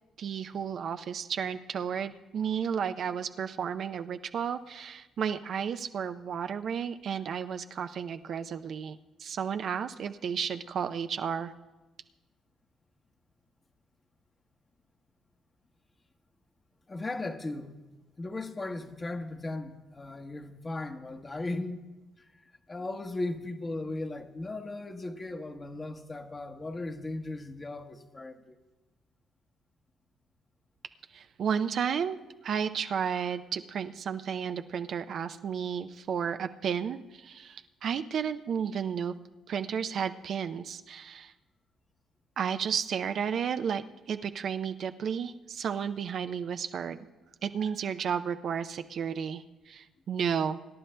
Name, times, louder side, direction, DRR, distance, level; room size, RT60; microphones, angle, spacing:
voice 1, 0.2-11.5 31.1-32.2 32.4-39.1 39.5-41.3 42.4-47.1 47.4-50.6, right 7 dB, 60° right, 0.5 m, -32 dB
voice 2, 16.9-17.8 18.2-21.9 22.2-28.6, left 2 dB, 30° left, 1.1 m, -37 dB
26.0 x 11.0 x 2.2 m
hypercardioid pair, 50°, 0 cm